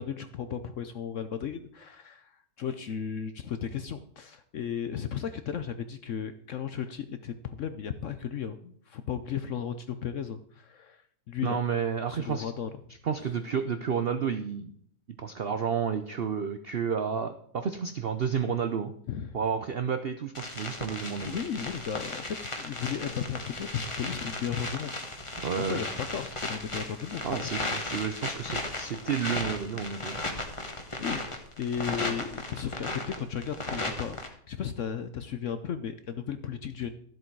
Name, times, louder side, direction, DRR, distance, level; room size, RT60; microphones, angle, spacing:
voice 1, 0.0-11.6 12.1-12.7 13.2-13.3 19.1-19.4 21.1-24.9 25.6-27.8 28.1-28.4 31.0-31.2 31.6-36.9, left 8 dB, 65° left, 10 dB, 0.8 m, -35 dB
voice 2, 11.4-12.5 13.0-14.7 15.2-18.9 19.3-21.4 25.4-25.8 27.2-30.2, right 7 dB, 70° right, 9 dB, 0.5 m, -31 dB
sound 1, 20.3-34.3, left 2 dB, 20° left, 1.3 m, -36 dB
13.0 x 7.7 x 4.6 m, 0.64 s
omnidirectional pair, 1.9 m